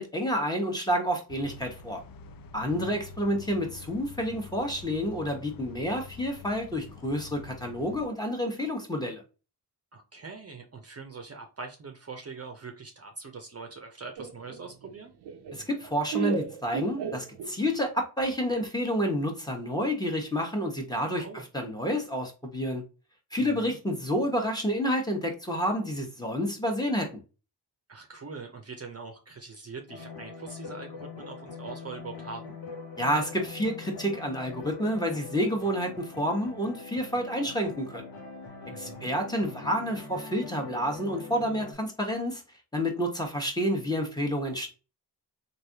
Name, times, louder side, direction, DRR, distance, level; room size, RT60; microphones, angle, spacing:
voice 1, 0.0-2.0 2.5-9.2 15.5-21.3 21.5-22.8 23.3-27.1 33.0-38.1 38.7-42.4 42.7-44.7, equal, 10° left, 1.0 m, -29 dB
sound 1, 1.3-8.1, left 5 dB, 55° left, 0.5 m, -47 dB
voice 2, 2.6-3.0 9.9-15.1 21.2-21.4 23.4-23.8 27.9-32.6 38.7-39.1, right 4 dB, 35° right, 0.6 m, -43 dB
Laughter, 14.2-17.8, right 7 dB, 75° right, 0.5 m, -35 dB
sound 2, 29.9-41.7, left 4 dB, 90° left, 1.0 m, -43 dB
3.2 x 2.6 x 2.7 m
cardioid pair, 70°, 41 cm